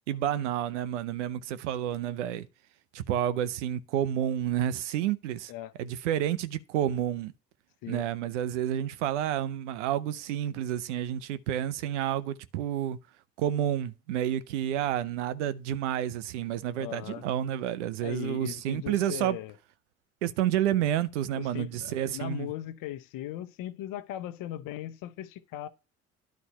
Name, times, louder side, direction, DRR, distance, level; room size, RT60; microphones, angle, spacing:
voice 1, 0.1-2.5 2.9-5.5 5.8-7.3 7.9-13.0 13.4-19.4 20.2-22.5, right 11 dB, 85° right, 0.7 m, -30 dB
voice 2, 16.8-17.2 18.0-19.5 21.3-25.7, left 13 dB, 70° left, 1.0 m, -38 dB
10.5 x 4.2 x 5.6 m
hypercardioid pair, 55°, 35 cm